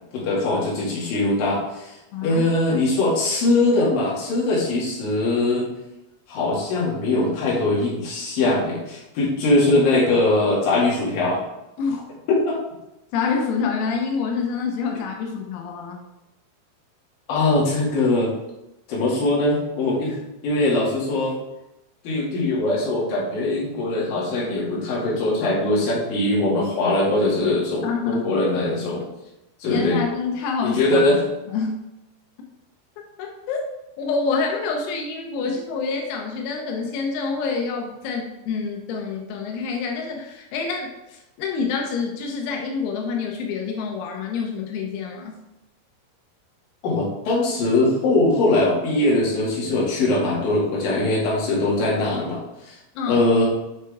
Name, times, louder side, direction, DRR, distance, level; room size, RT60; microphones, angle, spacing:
voice 1, 0.1-1.9 2.2-5.7 6.3-11.4 12.5-12.6 17.3-18.3 18.9-20.2 20.4-21.3 22.0-29.0 29.6-30.0 30.6-31.2 46.8-52.8 53.1-53.5, left 2 dB, 50° left, -6 dB, 3.5 m, -21 dB
voice 2, 2.1-2.4 2.7-2.8 11.8-12.0 13.1-16.0 27.8-28.3 29.7-31.0 31.5-31.8 33.2-33.6 34.0-45.4 53.0-53.3, left 5 dB, 85° left, 2 dB, 3.7 m, -27 dB
8.2 x 6.4 x 3.5 m, 0.93 s
omnidirectional pair, 6.0 m